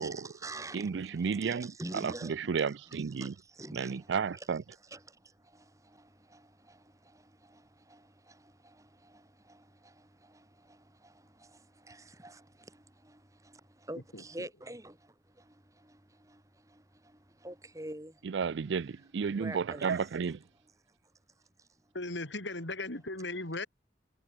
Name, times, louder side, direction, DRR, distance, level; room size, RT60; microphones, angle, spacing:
voice 1, 0.0-2.6 2.9-4.5 4.9-18.2 19.3-20.1 21.6-21.7, right 1 dB, 15° right, 2.3 m, -48 dB
voice 2, 0.7-3.3 3.7-4.6 18.2-20.4, right 6 dB, 80° right, 0.4 m, -32 dB
voice 3, 14.1-14.5 21.9-23.7, left 2 dB, 85° left, 4.9 m, -37 dB
head